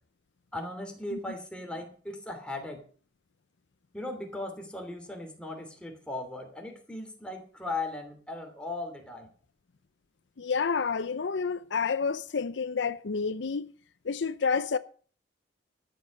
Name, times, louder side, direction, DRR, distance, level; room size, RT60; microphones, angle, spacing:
voice 1, 0.5-2.8 3.9-9.3, left 2 dB, 5° left, 2.8 m, -38 dB
voice 2, 10.4-13.7 14.0-14.8, left 5 dB, 75° left, 0.6 m, -29 dB
13.0 x 7.8 x 6.5 m
head